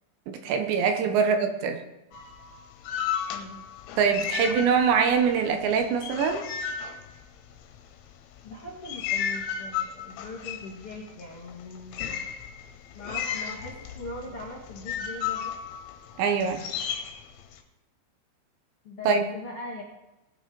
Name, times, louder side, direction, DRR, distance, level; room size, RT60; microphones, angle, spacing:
voice 1, 0.3-1.8 4.0-6.4 16.2-16.7 19.1-19.3, right 6 dB, 75° right, 5 dB, 3.2 m, -23 dB
voice 2, 1.1-1.5 3.3-3.7 4.4-4.7 8.4-12.3 12.9-15.5 18.8-19.8, left 2 dB, 45° left, -5 dB, 1.9 m, -41 dB
sound 1, 2.1-5.2 5.5-7.8 8.4-17.6, left 8 dB, 90° left, 3.5 m, -34 dB
19.5 x 7.2 x 5.3 m, 0.96 s
omnidirectional pair, 5.4 m